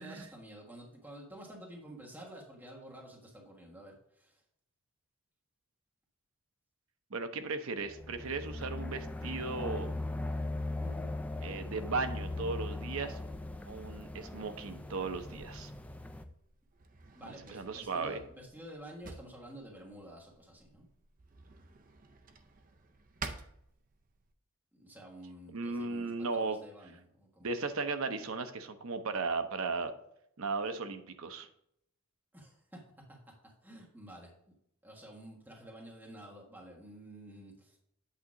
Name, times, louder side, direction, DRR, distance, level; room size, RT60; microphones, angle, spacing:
voice 1, 0.0-4.4 10.8-11.0 17.1-20.9 24.7-27.5 32.3-32.8 33.1-33.2 33.6-34.3 34.8-37.8, right 1 dB, 10° right, -2 dB, 1.3 m, -50 dB
voice 2, 7.1-9.9 11.4-13.2 13.7-15.7 17.2-18.2 25.5-26.6 27.4-29.9 30.4-31.5, right 4 dB, 80° right, 9 dB, 0.7 m, -36 dB
sound 1, 7.9-16.3, left 2 dB, 5° left, 0.3 m, -39 dB
Drawer open or close, 16.2-24.3, right 4 dB, 40° right, 0.6 m, -50 dB
8.5 x 2.9 x 6.1 m, 0.74 s
head